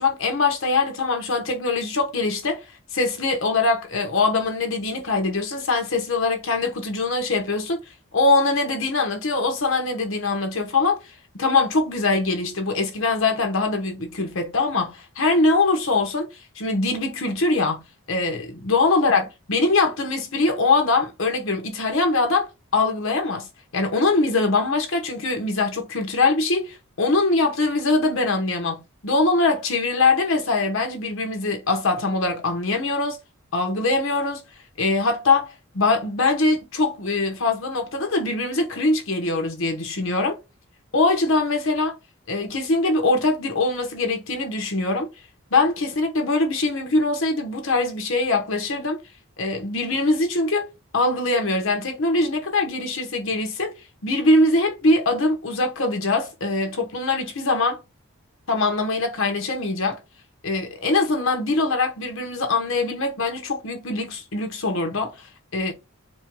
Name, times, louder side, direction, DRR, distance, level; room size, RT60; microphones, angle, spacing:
voice 1, 0.0-2.6 2.9-7.8 8.1-11.0 11.4-17.8 18.1-23.5 23.7-33.2 33.5-34.4 34.8-40.4 40.9-42.0 42.3-45.1 45.5-49.0 49.4-53.8 54.0-57.8 58.5-60.0 60.4-65.7, left 3 dB, 70° left, 1.0 m, -22 dB
4.4 x 2.3 x 3.0 m
head